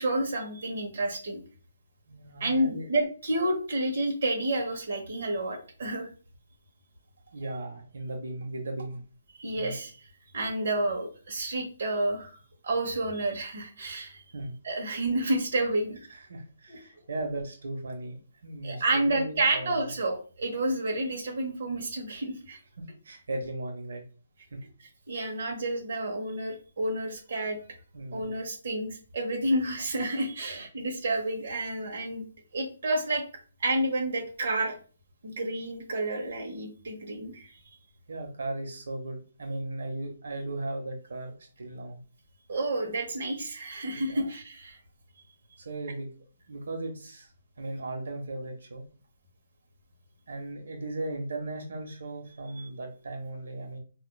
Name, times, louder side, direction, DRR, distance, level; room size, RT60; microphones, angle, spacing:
voice 1, 0.0-1.4 2.4-6.1 9.4-9.9 10.3-12.4 12.6-14.2 14.6-16.0 16.7-16.8 18.6-22.6 25.1-27.6 28.1-32.3 32.5-33.2 33.6-34.7 35.2-37.5 42.5-44.8 52.6-52.7, right 1 dB, 45° right, 1 dB, 1.0 m, -30 dB
voice 2, 2.1-2.9 7.3-9.0 9.5-9.7 14.3-14.5 16.1-18.2 18.4-19.9 22.8-24.0 24.5-24.6 27.9-28.3 30.4-30.6 38.1-42.0 43.9-44.3 45.6-46.1 46.5-47.3 47.6-48.9 50.3-53.8, right 2 dB, 80° right, 3 dB, 0.8 m, -37 dB
4.3 x 2.3 x 2.3 m, 0.38 s
hypercardioid pair, 180°, 0 cm